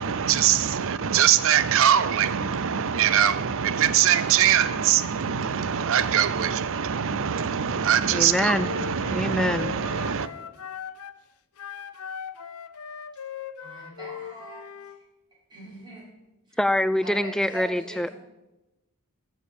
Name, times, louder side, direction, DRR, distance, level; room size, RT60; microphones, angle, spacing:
voice 1, 0.0-10.3, right 9 dB, 65° right, 0.6 m, -23 dB
voice 2, 8.1-8.7 9.1-9.8 16.6-18.1, left 1 dB, 5° left, 0.4 m, -25 dB
Wind instrument woodwind instrument, 8.2-11.2 11.6-15.0, left 7 dB, 75° left, 0.7 m, -39 dB
voice 3, 13.6-14.9 15.5-16.0 16.5-16.6 17.0-18.1, right 1 dB, 20° right, 5.7 m, -41 dB
13.0 x 7.5 x 7.0 m
head